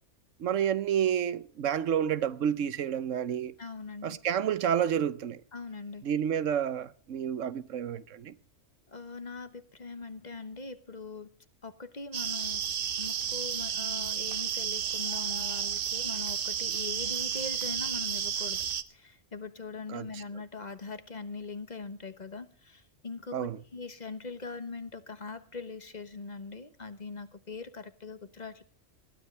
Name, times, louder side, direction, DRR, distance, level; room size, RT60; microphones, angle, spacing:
voice 1, 0.4-3.5 4.0-5.4 6.0-8.3 19.9-20.0 23.3-23.6, right 9 dB, 80° right, 1.2 m, -29 dB
voice 2, 3.6-4.2 5.5-6.0 8.9-11.3 11.6-12.6 13.0-28.6, left 4 dB, 35° left, 1.1 m, -41 dB
sound 1, 12.1-18.8, right 8 dB, 55° right, 0.8 m, -32 dB
20.5 x 12.5 x 3.2 m
omnidirectional pair, 1.3 m